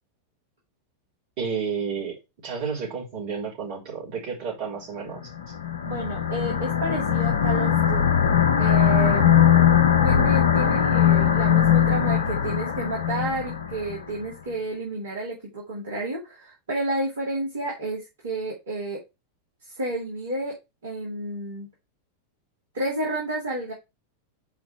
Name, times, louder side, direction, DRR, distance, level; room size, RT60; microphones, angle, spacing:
voice 1, 1.4-2.1 2.4-5.2, right 6 dB, 45° right, -3 dB, 3.8 m, -31 dB
sound 1, 5.4-14.0, left 9 dB, 65° left, 0.7 m, -20 dB
voice 2, 5.8-8.2 8.6-9.4 10.0-19.0 19.7-20.6 20.8-21.7 22.7-23.7, right 2 dB, 65° right, -3 dB, 2.1 m, -31 dB
5.1 x 4.9 x 4.8 m, 0.23 s
figure-of-eight pair, 90°, 0 cm